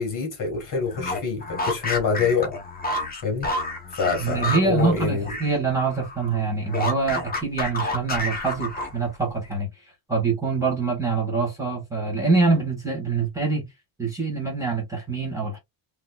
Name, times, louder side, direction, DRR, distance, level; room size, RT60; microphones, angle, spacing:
voice 1, 0.0-2.5 3.2-3.5 3.9-5.2, left 5 dB, 40° left, 1.9 m, -26 dB
sound 1, 0.9-5.6 5.9-9.2, left 2 dB, 20° left, 1.0 m, -30 dB
voice 2, 4.2-13.7 14.0-15.6, right 4 dB, 5° right, 1.4 m, -25 dB
3.9 x 2.9 x 2.3 m
cardioid pair, 170°, 46 cm